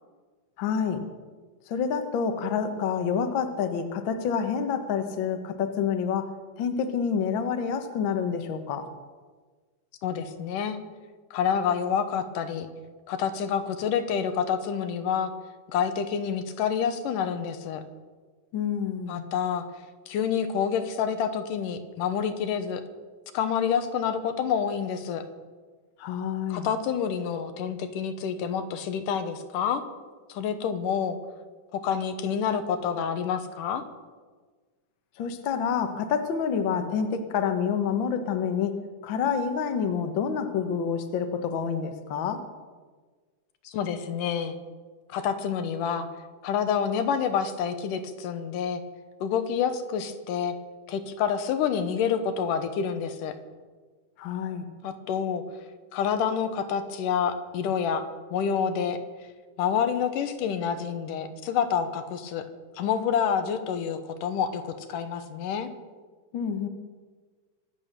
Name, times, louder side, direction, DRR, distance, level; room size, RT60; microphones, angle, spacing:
voice 1, 0.6-1.0 1.7-6.3 6.6-8.9 18.5-19.3 26.0-26.7 35.2-38.8 39.0-42.4 54.2-54.6 66.3-66.7, left 7 dB, 55° left, 7 dB, 1.5 m, -28 dB
voice 2, 10.0-10.8 11.3-12.7 13.1-15.3 15.7-17.8 19.1-19.7 20.1-22.8 23.3-25.2 26.5-29.8 30.3-31.2 31.7-33.8 43.6-44.6 45.1-46.1 46.4-48.8 49.2-50.6 50.9-53.4 54.8-55.4 55.9-59.0 59.6-62.4 62.8-65.7, left 7 dB, 80° left, 9 dB, 2.7 m, -28 dB
24.5 x 8.4 x 6.7 m, 1.4 s
omnidirectional pair, 3.7 m